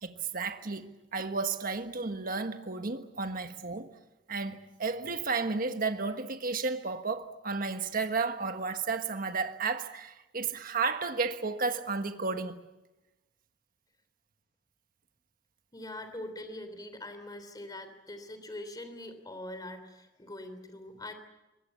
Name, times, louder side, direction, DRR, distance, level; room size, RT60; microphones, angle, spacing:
voice 1, 0.0-3.9 4.3-12.7, right 4 dB, 50° right, 1.4 m, -33 dB
voice 2, 15.7-21.1, left 1 dB, 20° left, 3.2 m, -43 dB
24.5 x 20.0 x 8.3 m
head